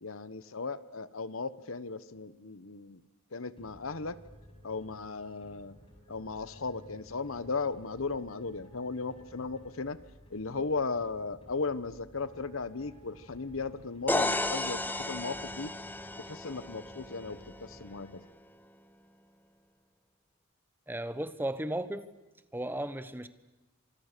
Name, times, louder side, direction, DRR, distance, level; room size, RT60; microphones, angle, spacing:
voice 1, 0.0-3.0 3.3-4.2 4.6-5.7 6.1-10.0 10.3-14.8 15.1-15.7 16.2-18.2, left 4 dB, 80° left, 15 dB, 1.1 m, -36 dB
sound 1, 3.5-18.6, equal, 25° left, 6.3 m, -56 dB
sound 2, 14.1-17.9, left 2 dB, 10° left, 0.9 m, -34 dB
voice 2, 20.9-22.0 22.5-23.3, right 1 dB, 10° right, 12 dB, 1.1 m, -35 dB
29.0 x 26.0 x 6.8 m, 1.0 s
head